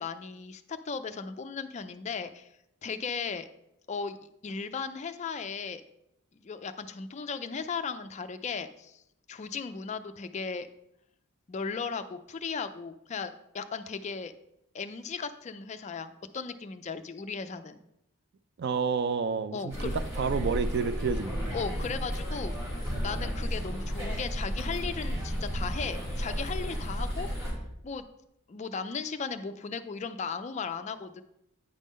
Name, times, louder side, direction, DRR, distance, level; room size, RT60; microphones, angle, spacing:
voice 1, 0.0-2.5 2.8-3.5 3.9-4.2 4.4-5.8 6.4-9.0 9.3-10.7 11.5-14.3 14.7-17.8 19.5-20.0 21.5-22.6 23.0-27.3 27.8-28.1 28.5-31.2, left 5 dB, 30° left, 10 dB, 0.3 m, -36 dB
voice 2, 18.6-21.4, right 5 dB, 50° right, 12 dB, 0.3 m, -30 dB
sound 1, 19.7-27.5, equal, 15° right, 2.7 m, -33 dB
9.1 x 5.2 x 3.6 m, 0.81 s
head